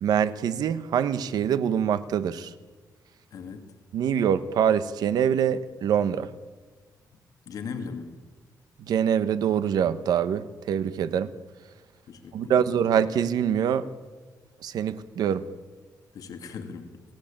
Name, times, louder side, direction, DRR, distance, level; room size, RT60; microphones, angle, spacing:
voice 1, 0.0-2.5 3.9-6.3 8.8-11.3 12.3-13.9 14.6-15.5, right 8 dB, 75° right, 13 dB, 1.3 m, -24 dB
voice 2, 3.3-3.7 7.5-8.1 12.1-12.6 16.1-17.0, left 5 dB, 65° left, 5 dB, 2.9 m, -38 dB
30.0 x 18.5 x 8.9 m, 1.4 s
wide cardioid pair, 165°, 7 cm